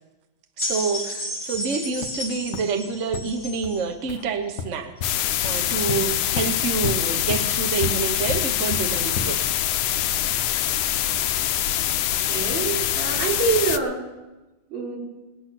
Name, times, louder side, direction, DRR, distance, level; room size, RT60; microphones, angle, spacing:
sound 1, 0.6-3.8 4.7-4.8, left 1 dB, 35° left, 6.7 m, -32 dB
voice 1, 0.6-4.9 5.4-9.5, right 5 dB, 45° right, 5 dB, 1.1 m, -27 dB
sound 2, 1.5-1.6 2.0-2.2 2.5-2.6 3.1-3.2 3.6-3.7 4.1-4.2 4.6-5.1 5.4-5.5 5.9-9.5, left 4 dB, 60° left, 1.3 m, -32 dB
sound 3, 5.0-13.8, left 11 dB, 75° left, 1.4 m, -24 dB
voice 2, 12.2-14.0 14.7-15.0, right 4 dB, 70° right, -2 dB, 4.8 m, -25 dB
20.0 x 8.7 x 6.1 m, 1.1 s
omnidirectional pair, 2.4 m